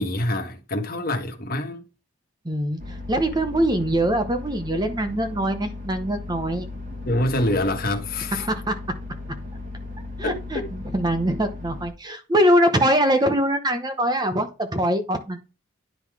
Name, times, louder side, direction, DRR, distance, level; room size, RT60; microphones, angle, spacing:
voice 1, 0.0-1.8 7.0-8.4 10.2-10.6, left 1 dB, 45° left, 1.5 m, -25 dB
voice 2, 2.4-6.7 8.4-8.7 10.2-15.4, right 1 dB, 20° right, 0.8 m, -23 dB
sound 1, 2.8-11.9, left 2 dB, 35° right, 1.5 m, -36 dB
10.0 x 3.9 x 4.8 m
head